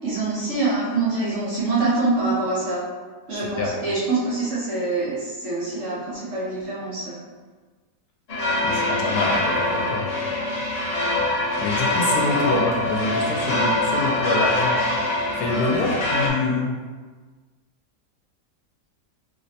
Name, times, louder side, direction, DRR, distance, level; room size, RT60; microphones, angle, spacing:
voice 1, 0.0-2.8 3.3-7.1, right 3 dB, 50° right, -9 dB, 1.3 m, -25 dB
voice 2, 3.4-3.8 8.6-10.1 11.6-14.8 15.4-16.8, left 3 dB, 75° left, -2 dB, 1.1 m, -26 dB
sound 1, 8.3-16.3, left 1 dB, 55° left, 0.4 m, -23 dB
3.2 x 3.0 x 2.8 m, 1.4 s
omnidirectional pair, 1.8 m